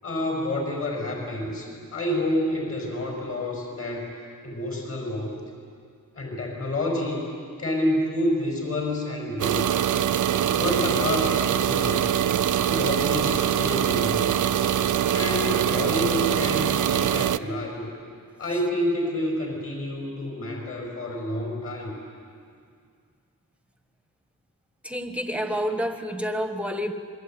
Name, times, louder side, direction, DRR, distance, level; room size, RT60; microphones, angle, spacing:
voice 1, 0.0-4.1 4.4-5.4 6.2-7.2 7.6-9.8 10.4-12.1 12.6-14.2 15.1-17.9 18.4-21.9, left 1 dB, 40° left, 0 dB, 6.4 m, -28 dB
sound 1, 9.4-17.4, right 10 dB, 60° right, 0.6 m, -23 dB
voice 2, 24.8-26.9, equal, 5° right, 7 dB, 1.4 m, -28 dB
26.0 x 22.5 x 9.3 m, 2.2 s
wide cardioid pair, 165°, 34 cm